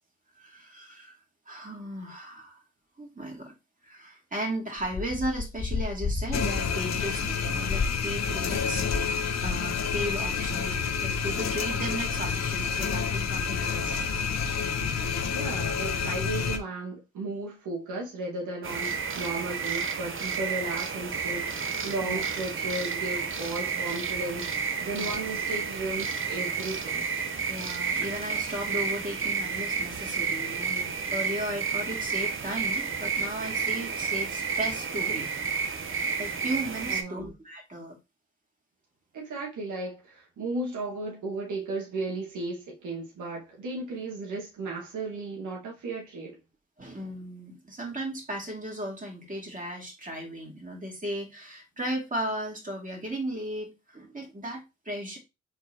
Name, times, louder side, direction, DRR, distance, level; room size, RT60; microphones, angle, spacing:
voice 1, 0.4-1.2 1.5-2.6 3.0-3.5 3.8-14.1 22.0-22.2 25.0-25.2 27.5-35.3 36.2-38.0 46.8-55.2, right 1 dB, 25° right, 2.5 m, -36 dB
sound 1, 4.8-9.1 9.4-9.8, left 4 dB, 30° left, 0.6 m, -33 dB
sound 2, 6.3-16.6, left 6 dB, 60° left, 0.9 m, -29 dB
voice 2, 15.3-27.1 36.9-37.3 39.1-46.4, right 2 dB, 80° right, 1.8 m, -35 dB
sound 3, 18.6-37.0, right 5 dB, 45° right, 0.9 m, -31 dB
4.5 x 4.0 x 2.9 m
supercardioid pair, 50°, 30 cm